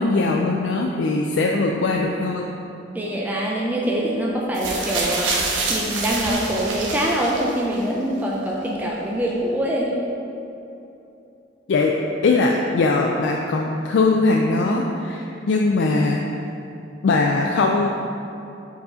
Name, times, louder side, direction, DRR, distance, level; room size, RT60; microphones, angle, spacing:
voice 1, 0.0-2.5 11.7-11.9 12.2-16.2 17.0-17.9, left 3 dB, 70° left, 0 dB, 0.4 m, -20 dB
voice 2, 2.9-5.3 5.7-10.0, right 1 dB, 10° right, -3 dB, 0.5 m, -24 dB
sound 1, 4.5-7.8 8.7-8.8, right 3 dB, 85° right, 0.8 m, -26 dB
4.7 x 4.0 x 4.9 m, 2.8 s
head